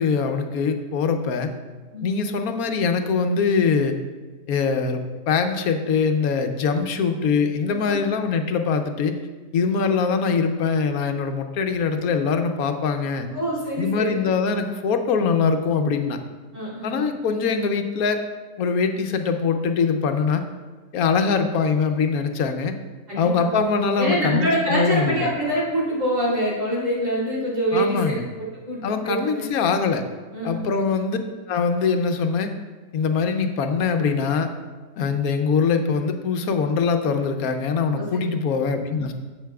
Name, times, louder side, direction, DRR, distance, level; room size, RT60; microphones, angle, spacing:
voice 1, 0.0-1.5 2.0-4.0 4.5-9.1 9.5-13.3 13.8-16.2 16.8-18.2 18.6-20.4 20.9-22.7 23.2-25.3 27.7-28.2 28.8-30.1 30.4-31.2 31.5-32.5 32.9-34.5 35.0-39.1, left 5 dB, 80° left, 6 dB, 1.1 m, -23 dB
voice 2, 7.7-8.0 13.3-14.2 16.5-17.1 23.1-23.5 24.0-29.5 30.3-30.7 37.9-38.2, right 1 dB, 60° right, -7 dB, 3.5 m, -25 dB
12.0 x 8.1 x 2.3 m, 1.3 s
omnidirectional pair, 1.5 m